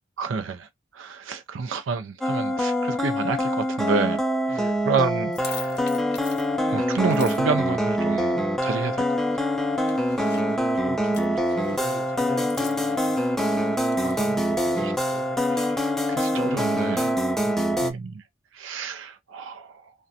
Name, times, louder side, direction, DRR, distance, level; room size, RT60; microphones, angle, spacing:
voice 1, 0.2-4.6 4.8-5.8 6.7-9.5 14.8-14.9 15.4-17.2 17.8-18.2 18.5-19.9, right 4 dB, 85° right, 0.4 m, -29 dB
sound 1, 2.2-17.9, equal, ahead, 0.3 m, -24 dB
voice 2, 4.5-4.9 10.2-13.2 14.0-15.5 17.4-17.9, right 1 dB, 35° right, 0.7 m, -40 dB
sound 2, 5.3-6.7 7.1-7.4 9.8-10.5 11.1-12.0 12.5-13.3 13.9-14.6, left 7 dB, 60° left, 0.6 m, -43 dB
2.4 x 2.1 x 2.6 m
head